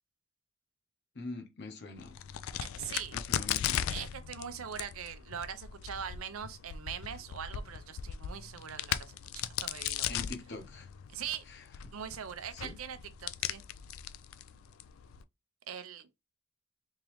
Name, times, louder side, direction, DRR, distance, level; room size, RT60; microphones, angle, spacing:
voice 1, 1.1-2.2 3.1-3.9 10.1-10.9 11.5-11.9 12.5-12.8, left 3 dB, 55° left, 1.0 m, -44 dB
Crack, 2.0-15.2, left 10 dB, 80° left, 0.4 m, -38 dB
voice 2, 2.6-3.2 3.9-10.3 11.1-11.4 11.9-13.6 15.7-16.2, right 8 dB, 90° right, 0.6 m, -42 dB
3.7 x 3.1 x 3.1 m
head